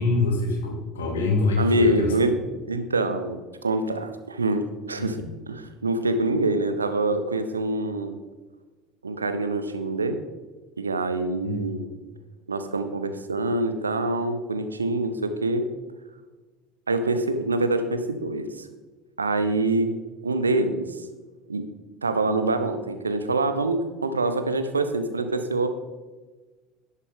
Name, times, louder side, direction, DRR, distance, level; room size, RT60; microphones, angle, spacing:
voice 1, 0.0-2.1 5.0-5.3 11.4-11.6, left 3 dB, 75° left, 1 dB, 2.1 m, -25 dB
voice 2, 1.6-2.4 2.7-8.2 9.0-10.2 10.8-11.9 12.5-15.7 16.9-18.7 19.2-19.9 20.2-21.1 21.5-21.6 22.0-25.7, right 2 dB, 85° right, 9 dB, 0.7 m, -25 dB
11.0 x 8.4 x 3.6 m, 1.3 s
figure-of-eight pair, 65°, 0 cm